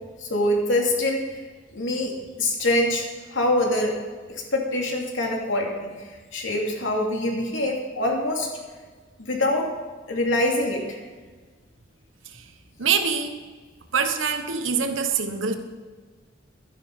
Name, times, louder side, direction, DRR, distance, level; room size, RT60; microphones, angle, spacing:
voice 1, 0.2-1.4 1.7-2.1 2.4-3.9 4.3-8.5 9.2-9.7 10.1-11.0, left 1 dB, 75° left, 0 dB, 2.7 m, -24 dB
voice 2, 12.8-13.4 13.9-15.5, right 6 dB, 80° right, 7 dB, 1.3 m, -24 dB
13.0 x 9.9 x 5.5 m, 1.4 s
head